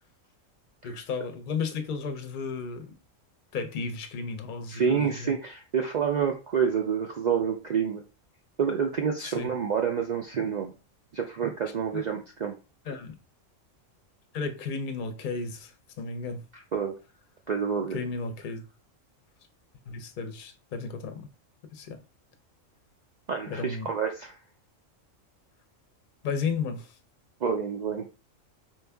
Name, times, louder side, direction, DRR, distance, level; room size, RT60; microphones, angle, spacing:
voice 1, 0.8-3.0 3.5-5.3 9.2-9.5 11.9-12.0 12.8-13.1 14.3-16.4 17.9-18.6 19.9-21.3 21.7-22.0 23.5-23.9 26.2-27.0, left 4 dB, 50° left, 0.7 m, -33 dB
voice 2, 4.7-8.0 8.6-10.7 11.1-12.5 16.7-17.0 17.5-18.0 23.3-24.4 27.4-28.1, right 7 dB, 75° right, 0.4 m, -28 dB
4.6 x 2.6 x 3.4 m
omnidirectional pair, 1.4 m